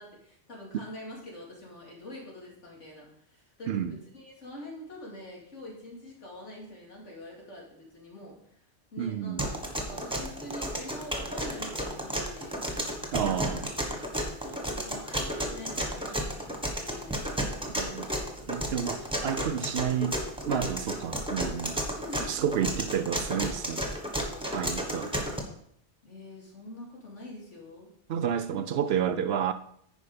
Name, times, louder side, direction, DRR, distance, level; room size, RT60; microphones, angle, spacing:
voice 1, 0.0-8.6 8.9-9.5 9.8-12.6 14.4-16.4 16.8-17.4 21.9-22.4 26.0-27.9 28.5-28.6, left 1 dB, 90° left, 2.9 m, -45 dB
voice 2, 9.0-9.5 13.1-13.7 17.8-18.1 18.5-20.2 20.5-21.8 22.3-23.8 24.5-25.1 28.1-29.5, right 8 dB, 65° right, 0.7 m, -30 dB
sound 1, 9.4-25.4, equal, 5° right, 1.2 m, -32 dB
10.0 x 5.0 x 5.0 m
omnidirectional pair, 1.2 m